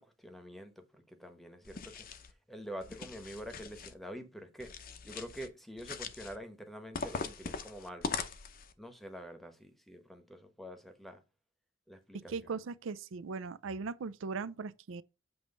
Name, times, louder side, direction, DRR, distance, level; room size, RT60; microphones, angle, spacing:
voice 1, 0.0-2.1 2.5-4.7 5.0-8.1 8.8-11.2 11.9-12.6, equal, ahead, 1.0 m, -46 dB
sound 1, 1.6-2.3 2.8-3.9 4.6-5.5 5.8-6.4 6.9-8.7, left 5 dB, 45° left, 0.7 m, -41 dB
voice 2, 12.3-15.0, right 4 dB, 70° right, 0.4 m, -39 dB
7.9 x 3.1 x 5.3 m
head